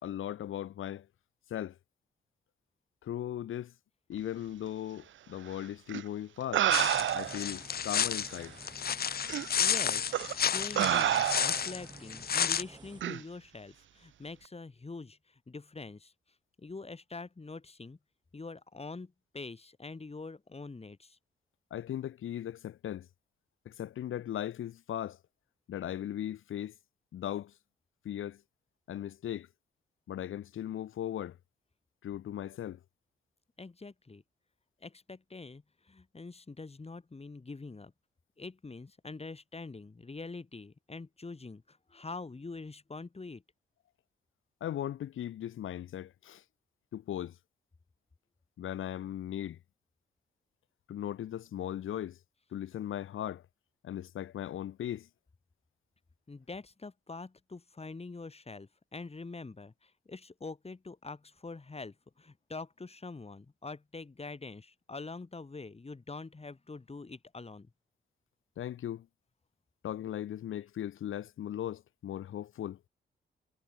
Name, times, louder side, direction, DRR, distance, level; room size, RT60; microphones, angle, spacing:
voice 1, 0.0-1.1 1.5-1.8 3.0-3.7 4.1-6.7 7.1-8.6 21.7-23.1 23.7-25.2 25.7-26.7 27.1-27.5 28.0-28.4 28.9-29.5 30.1-31.4 32.0-32.8 44.6-46.4 46.9-47.4 48.6-49.6 50.9-52.2 52.5-53.4 53.8-55.1 68.6-69.1 69.8-72.9, left 11 dB, 90° left, 3.6 m, -38 dB
sound 1, 5.9-6.0 6.5-7.5 8.3-8.4 9.3-9.5 10.1-10.3 10.8-11.7 13.0-13.2, right 11 dB, 75° right, 0.7 m, -28 dB
sound 2, 6.7-12.6, left 8 dB, 50° left, 0.7 m, -31 dB
sound 3, 6.7-13.0, right 2 dB, 20° right, 6.3 m, -52 dB
voice 2, 9.5-16.1 16.6-18.0 18.3-21.2 33.6-34.2 34.8-37.9 38.4-43.4 56.3-67.7, left 3 dB, 30° left, 5.5 m, -45 dB
cardioid pair, 75°, 20 cm